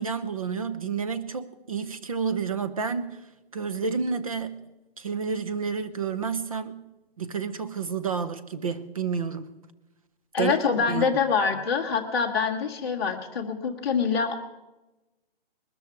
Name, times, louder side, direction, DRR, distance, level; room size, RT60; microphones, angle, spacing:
voice 1, 0.0-3.3 3.5-4.7 5.0-6.9 7.2-9.6 10.4-11.1, right 5 dB, 35° right, 0.8 m, -30 dB
voice 2, 10.3-14.3, left 6 dB, 25° left, 1.5 m, -25 dB
20.5 x 13.5 x 4.7 m
hypercardioid pair, 180°, 30 cm